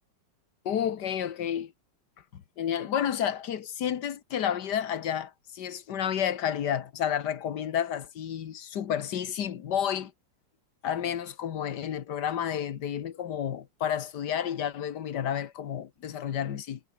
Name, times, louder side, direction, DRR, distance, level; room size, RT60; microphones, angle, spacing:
voice 1, 0.7-1.7 2.3-10.1 10.8-16.8, left 9 dB, 65° left, 1.8 m, -31 dB
omnidirectional pair, 2.0 m